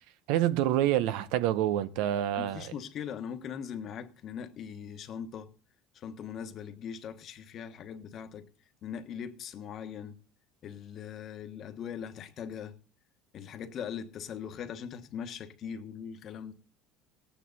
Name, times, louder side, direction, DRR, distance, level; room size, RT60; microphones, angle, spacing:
voice 1, 0.3-2.7, right 12 dB, 75° right, 0.8 m, -27 dB
voice 2, 2.4-5.5 5.9-8.5 8.8-10.2 10.6-12.8 13.3-16.5, left 8 dB, 45° left, 1.3 m, -40 dB
17.5 x 9.1 x 4.1 m
supercardioid pair, 125°, 0 cm